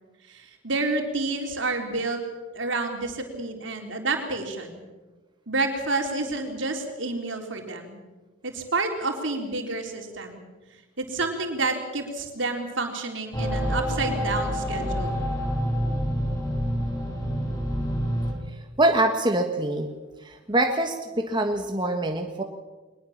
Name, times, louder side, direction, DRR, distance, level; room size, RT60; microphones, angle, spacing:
voice 1, 0.3-2.2 2.5-4.8 5.5-8.0 8.4-10.4 11.0-15.2, right 3 dB, 65° right, 3 dB, 3.9 m, -29 dB
sound 1, 13.3-18.3, equal, 15° left, 4.9 m, -27 dB
voice 2, 18.8-19.9 20.2-22.4, right 1 dB, 25° right, 3 dB, 1.5 m, -24 dB
22.5 x 20.5 x 7.3 m, 1.3 s
head